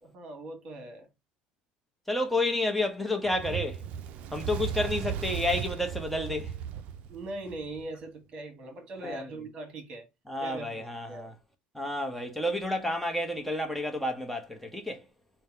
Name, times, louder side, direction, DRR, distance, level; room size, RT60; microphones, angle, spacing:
voice 1, 0.0-1.1 7.1-10.1 10.4-11.3, right 2 dB, 40° right, 1.5 m, -41 dB
voice 2, 2.1-3.8 4.3-6.5 9.0-9.3 10.3-11.3 11.7-15.0, left 1 dB, 5° left, 0.9 m, -30 dB
Fire, 3.2-7.8, right 8 dB, 55° right, 0.4 m, -36 dB
3.4 x 2.2 x 4.3 m
cardioid pair, 120°, 3 cm